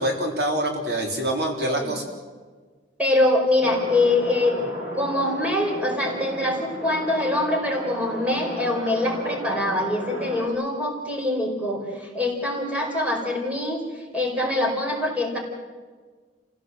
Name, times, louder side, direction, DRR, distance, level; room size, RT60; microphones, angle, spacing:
voice 1, 0.0-2.0, right 1 dB, 65° right, 2 dB, 3.7 m, -25 dB
voice 2, 3.0-13.8 14.1-15.4, left 1 dB, 10° right, 0 dB, 4.8 m, -24 dB
sound 1, 3.6-10.5, equal, 45° right, 8.0 m, -34 dB
29.5 x 16.5 x 7.9 m, 1.5 s
head